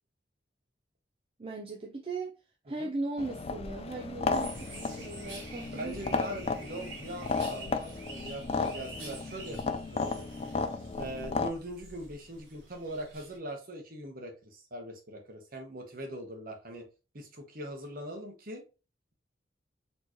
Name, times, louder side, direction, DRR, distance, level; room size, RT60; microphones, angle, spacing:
voice 1, 1.4-2.3 2.6-6.6, right 2 dB, 30° right, 0.5 m, -38 dB
sound 1, 3.2-11.5, left 4 dB, 35° left, 0.3 m, -34 dB
sound 2, 4.3-13.4, right 2 dB, 90° right, 1.9 m, -47 dB
voice 2, 5.7-10.1 10.9-16.9 17.1-18.6, right 1 dB, 50° right, 1.1 m, -41 dB
4.3 x 3.1 x 2.9 m
head